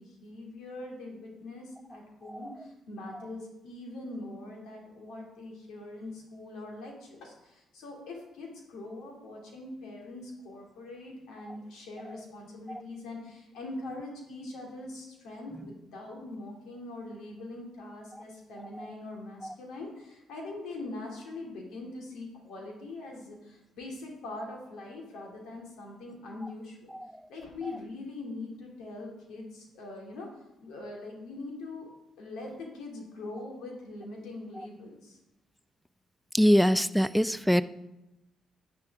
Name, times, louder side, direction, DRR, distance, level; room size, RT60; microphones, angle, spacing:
voice 1, 0.0-26.9 27.3-30.3 30.6-31.9 32.2-35.2, left 2 dB, 85° left, 0 dB, 2.5 m, -42 dB
voice 2, 36.3-37.6, equal, ahead, 13 dB, 0.4 m, -22 dB
10.0 x 9.0 x 3.5 m, 0.94 s
cardioid pair, 90°, 0 cm